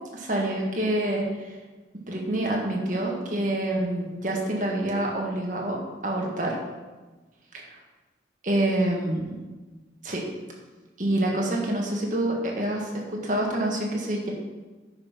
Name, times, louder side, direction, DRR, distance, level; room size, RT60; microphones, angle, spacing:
voice 1, 0.1-1.5 2.1-5.8 6.0-6.6 7.5-7.6 8.4-9.4 10.0-10.2 11.0-14.3, right 1 dB, 45° right, -1 dB, 1.8 m, -27 dB
9.7 x 5.6 x 5.8 m, 1.3 s
head